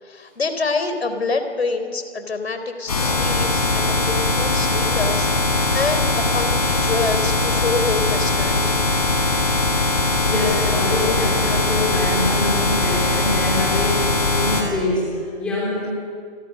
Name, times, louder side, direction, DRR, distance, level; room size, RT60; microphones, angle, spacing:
voice 1, 0.0-8.9, left 3 dB, 70° left, 8 dB, 3.8 m, -26 dB
sound 1, 2.9-14.6, left 3 dB, 35° left, 4.6 m, -20 dB
voice 2, 9.4-15.9, left 2 dB, 5° left, -5 dB, 3.7 m, -25 dB
29.0 x 23.0 x 6.7 m, 2.1 s
hypercardioid pair, 180°, 33 cm